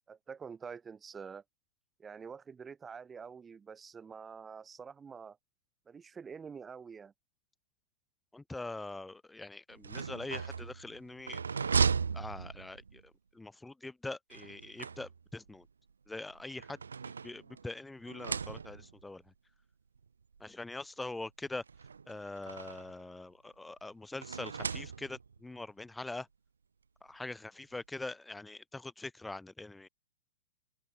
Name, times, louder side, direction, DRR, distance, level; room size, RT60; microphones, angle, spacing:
voice 1, 0.1-1.4 2.0-5.4 5.9-7.1, right 6 dB, 15° right, 5.4 m, -47 dB
voice 2, 8.3-11.7 12.1-13.0 13.3-15.7 16.1-16.8 17.2-19.2 20.4-21.6 22.1-26.3 27.0-29.9, left 2 dB, 5° left, 0.5 m, -43 dB
sound 1, 9.7-13.0 14.3-15.5 16.3-17.7 18.1-19.0 20.0-20.1 20.4-20.5 21.7-23.0 24.2-25.4, right 5 dB, 70° right, 0.4 m, -36 dB
open air
figure-of-eight pair, 100°, 0 cm